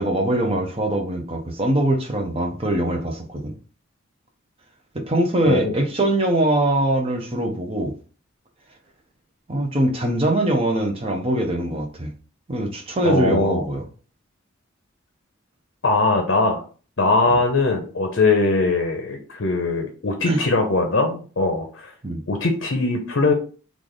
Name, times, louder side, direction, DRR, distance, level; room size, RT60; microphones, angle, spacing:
voice 1, 0.0-3.5 4.9-7.9 9.5-12.1 12.5-13.9 20.3-20.4 22.0-22.2, right 1 dB, 25° right, 0.7 m, -22 dB
voice 2, 5.4-5.8 13.0-13.7 15.8-16.6 17.0-21.9 22.3-23.3, left 3 dB, 55° left, 0.6 m, -21 dB
3.3 x 2.4 x 3.9 m
head